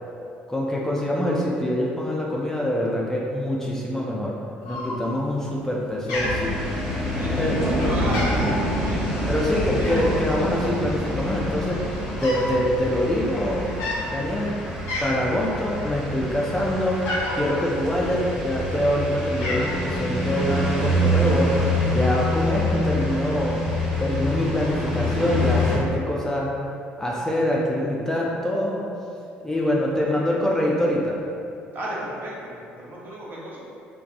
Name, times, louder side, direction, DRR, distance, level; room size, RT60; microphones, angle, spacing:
voice 1, 0.5-4.3 4.6-7.1 7.4-7.6 9.2-11.8 12.2-13.7 14.1-14.5 15.0-17.1 17.3-23.6 24.0-26.5 27.0-28.8 29.4-31.2, left 1 dB, 10° left, -4 dB, 0.4 m, -25 dB
Cat, 4.6-5.3 5.6-5.8 6.1-7.1 7.6-7.7 8.0-8.6 9.8-10.2 11.0-11.1 11.4-12.5 12.8-13.0 13.7-14.0 14.5-14.6 14.9-15.4 15.8-17.5 18.3-18.9 19.1-19.8, left 1 dB, 80° left, 0.6 m, -30 dB
sound 1, 6.1-25.8, left 1 dB, 5° right, 0.8 m, -26 dB
voice 2, 7.2-9.9 30.0-30.4 31.7-33.6, equal, 45° right, -6 dB, 0.8 m, -34 dB
2.6 x 2.3 x 2.5 m, 2.6 s
hypercardioid pair, 65°, 5 cm